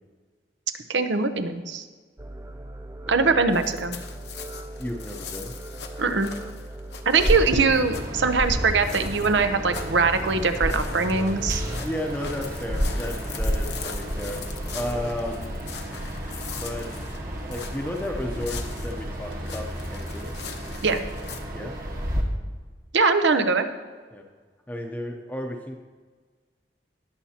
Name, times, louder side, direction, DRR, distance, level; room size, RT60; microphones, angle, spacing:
voice 1, 0.9-1.8 3.1-4.0 6.0-6.3 7.1-11.6 20.8-21.0 22.9-23.7, right 4 dB, 85° right, 9 dB, 0.8 m, -22 dB
sound 1, 2.2-15.1, right 1 dB, 15° right, 0.4 m, -39 dB
voice 2, 3.1-3.4 4.8-5.5 11.8-14.4 14.7-15.5 16.6-16.9 17.5-20.3 21.5-21.7 24.1-24.2 24.7-25.8, left 1 dB, 10° left, 1 dB, 0.7 m, -33 dB
sound 2, 3.5-21.4, left 7 dB, 70° left, 0.9 m, -42 dB
sound 3, 7.2-22.2, equal, 50° right, 1.5 m, -31 dB
19.5 x 7.3 x 2.9 m, 1.5 s
head